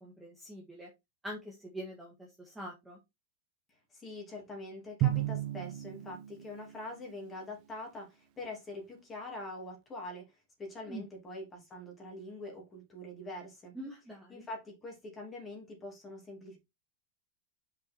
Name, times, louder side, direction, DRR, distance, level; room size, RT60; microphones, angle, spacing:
voice 1, 0.0-0.9 1.2-3.0 10.9-11.0 13.7-14.4, equal, 5° right, 1.5 m, -44 dB
voice 2, 3.9-10.3 10.6-13.7 14.3-16.6, left 2 dB, 15° left, 2.8 m, -44 dB
Drum, 5.0-7.2, right 14 dB, 40° right, 0.7 m, -34 dB
5.7 x 4.7 x 4.4 m
supercardioid pair, 170°, 0 cm